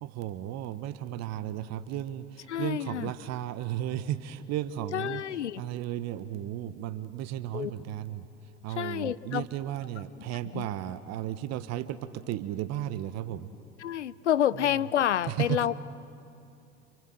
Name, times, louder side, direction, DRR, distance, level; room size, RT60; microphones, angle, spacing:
voice 1, 0.0-13.5 14.5-14.9 15.3-15.7, right 12 dB, 50° right, 13 dB, 1.2 m, -35 dB
voice 2, 2.5-3.1 4.9-5.6 7.5-7.7 8.8-9.4 10.5-10.7 13.8-15.8, left 10 dB, 85° left, 17 dB, 0.8 m, -28 dB
28.0 x 27.5 x 7.8 m, 2.6 s
figure-of-eight pair, 70°, 34 cm